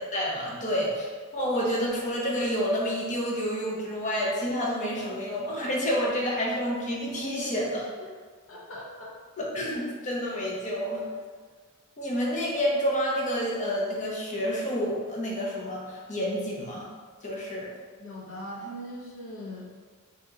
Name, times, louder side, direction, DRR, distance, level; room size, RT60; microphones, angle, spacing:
voice 1, 0.0-8.1 9.4-11.0 12.0-16.9 17.2-17.7, equal, 35° left, -3 dB, 0.7 m, -29 dB
voice 2, 8.5-9.1 18.0-19.6, equal, 65° left, -4 dB, 0.9 m, -40 dB
2.9 x 2.8 x 3.6 m, 1.5 s
head